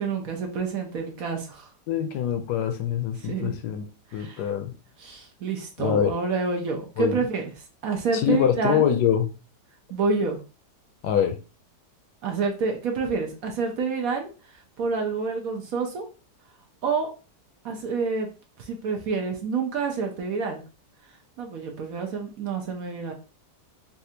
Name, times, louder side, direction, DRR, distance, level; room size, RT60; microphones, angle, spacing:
voice 1, 0.0-1.7 3.2-3.6 4.1-4.5 5.0-7.4 7.8-8.9 9.9-10.4 12.2-16.0 16.8-17.1 17.6-18.3 18.6-20.6 21.4-23.1, right 4 dB, 65° right, 2 dB, 1.0 m, -28 dB
voice 2, 1.9-3.8 4.1-4.7 5.8-6.1 7.0-7.2 8.1-9.3 11.0-11.4, left 9 dB, 75° left, 7 dB, 1.1 m, -24 dB
4.1 x 2.4 x 2.7 m, 0.33 s
omnidirectional pair, 1.8 m